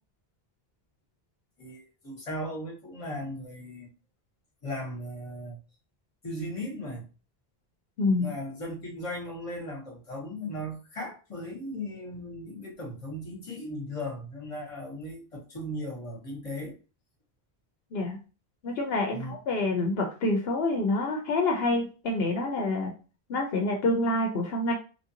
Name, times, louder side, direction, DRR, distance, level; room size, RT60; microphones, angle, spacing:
voice 1, 1.6-3.9 4.6-5.6 6.2-7.0 8.2-16.7 19.1-19.3, left 1 dB, 35° left, 0 dB, 1.1 m, -37 dB
voice 2, 8.0-8.3 17.9-18.2 18.6-22.9 23.3-24.7, left 2 dB, 75° left, 2 dB, 0.8 m, -27 dB
3.2 x 2.5 x 2.7 m, 0.34 s
omnidirectional pair, 1.0 m